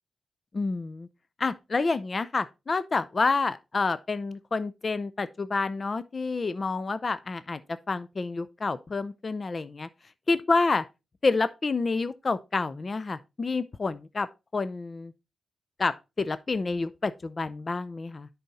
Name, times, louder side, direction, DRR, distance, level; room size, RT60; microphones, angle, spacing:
voice 1, 0.5-1.1 1.4-7.6 7.9-9.9 10.3-10.8 11.2-14.3 14.5-15.1 15.8-18.3, left 3 dB, 40° left, 0.5 m, -28 dB
10.0 x 4.1 x 4.1 m
cardioid pair, 75°, 0 cm